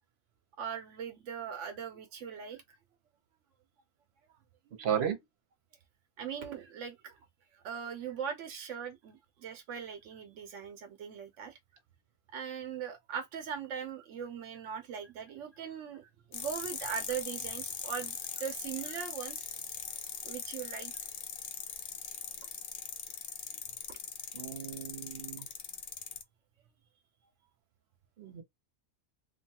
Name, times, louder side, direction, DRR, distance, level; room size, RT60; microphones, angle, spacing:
voice 1, 0.6-2.6 4.7-4.8 6.2-7.2 7.5-11.6 12.3-19.5 20.2-20.9 23.9-24.0, right 7 dB, 90° right, 1.0 m, -40 dB
voice 2, 4.8-5.2 24.3-25.5 28.2-28.4, right 9 dB, 65° right, 1.1 m, -34 dB
sound 1, 16.3-26.2, left 7 dB, 60° left, 0.6 m, -41 dB
2.9 x 2.2 x 2.8 m
omnidirectional pair, 1.2 m